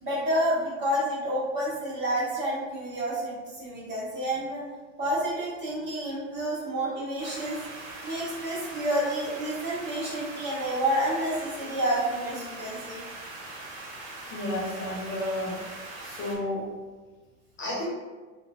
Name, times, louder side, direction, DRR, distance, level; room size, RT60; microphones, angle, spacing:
voice 1, 0.0-4.6 5.0-7.6 8.0-13.0, right 1 dB, 25° right, -7 dB, 1.4 m, -29 dB
sound 1, 7.2-16.4, right 2 dB, 45° right, 0.7 m, -41 dB
voice 2, 14.3-15.7 16.0-16.7 17.6-17.8, left 1 dB, 30° left, -6 dB, 0.6 m, -32 dB
2.6 x 2.2 x 2.5 m, 1.3 s
hypercardioid pair, 85°, 39 cm